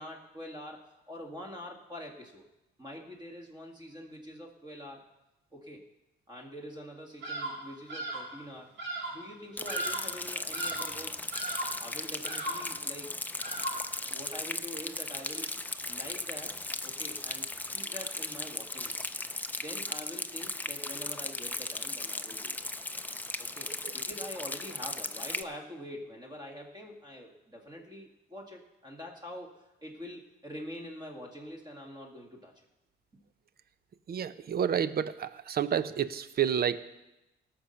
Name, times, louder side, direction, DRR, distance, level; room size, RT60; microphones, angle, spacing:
voice 1, 0.0-2.4 2.8-5.0 5.5-5.8 6.3-8.7 9.1-11.2 11.8-13.1 14.1-15.5 15.9-19.1 19.6-22.6 23.4-32.5, equal, 20° right, 0 dB, 2.1 m, -45 dB
Bird vocalization bird call bird song, 7.2-7.6 7.9-8.3 8.8-9.2 9.7-10.2 10.5-11.0 11.3-11.8 12.2-12.7 13.4-13.9, right 1 dB, 70° right, 5.6 m, -36 dB
Rain, 9.6-25.4, left 2 dB, 10° left, 0.6 m, -37 dB
voice 2, 34.1-36.8, right 8 dB, 50° right, 14 dB, 0.7 m, -29 dB
18.0 x 6.6 x 5.8 m, 0.97 s
cardioid pair, 90°, 20 cm